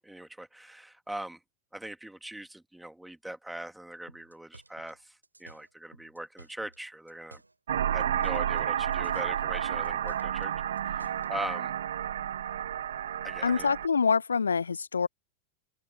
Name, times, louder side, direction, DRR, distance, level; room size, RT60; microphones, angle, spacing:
voice 1, 0.0-1.4 1.7-7.4 7.9-10.5 10.9-11.7 13.2-13.7, right 1 dB, 5° right, 2.9 m, -41 dB
sound 1, 4.1-6.8 7.1-8.7 8.9-11.3, right 2 dB, 85° right, 6.9 m, -54 dB
sound 2, 7.7-13.9, right 10 dB, 65° right, 1.4 m, -31 dB
voice 2, 13.4-15.1, left 5 dB, 75° left, 0.7 m, -26 dB
figure-of-eight pair, 90°, 0 cm